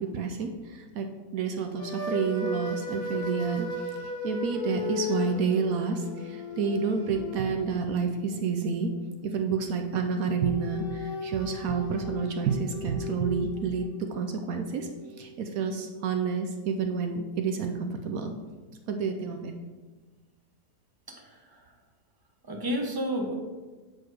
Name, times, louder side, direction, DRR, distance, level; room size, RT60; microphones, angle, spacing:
voice 1, 0.0-8.9 9.2-14.9 15.2-18.3 18.9-19.5, right 5 dB, 70° right, 5 dB, 0.9 m, -29 dB
sound 1, 1.8-9.1 10.2-16.3, left 3 dB, 40° left, 1.1 m, -37 dB
voice 2, 21.1-21.7 22.4-23.3, equal, 20° right, 1 dB, 0.6 m, -32 dB
6.4 x 4.3 x 4.7 m, 1.3 s
omnidirectional pair, 1.8 m